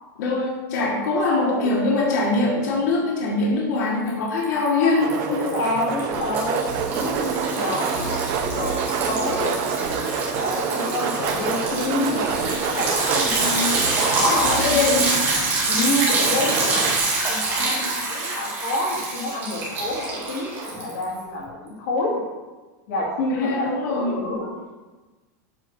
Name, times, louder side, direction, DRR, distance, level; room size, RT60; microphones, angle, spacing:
voice 1, 0.2-5.6 7.4-7.6 13.4-13.8 14.3-15.1 17.6-17.9 23.3-24.2, left 3 dB, 70° left, -3 dB, 1.5 m, -23 dB
voice 2, 1.1-1.7 4.8-6.6 7.0-7.3 7.5-8.2 8.5-9.6 9.8-13.4 14.0-14.5 14.8-15.2 15.7-16.9 17.3-22.2 22.9-24.5, left 1 dB, 55° left, -4 dB, 2.2 m, -28 dB
Liquid, 4.1-4.7 5.0-21.2, right 3 dB, 20° right, 2.0 m, -25 dB
sound 1, 5.0-14.8 16.1-17.0, right 6 dB, 40° right, 0.6 m, -28 dB
Engine, 11.6-17.3, right 3 dB, 80° right, 2.2 m, -39 dB
8.1 x 3.8 x 5.3 m, 1.2 s
supercardioid pair, 170°, 10 cm